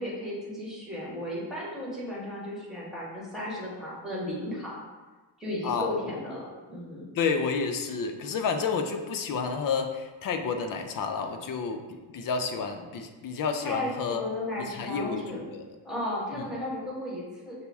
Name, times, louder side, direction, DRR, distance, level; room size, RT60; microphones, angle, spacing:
voice 1, 0.0-4.8 5.4-7.0 13.6-15.5 15.8-17.5, left 1 dB, ahead, -6 dB, 1.1 m, -35 dB
voice 2, 5.6-6.0 7.2-14.2 14.6-15.6 16.3-16.5, left 5 dB, 45° left, 5 dB, 0.5 m, -30 dB
5.7 x 2.0 x 3.4 m, 1.3 s
cardioid pair, 120°, 46 cm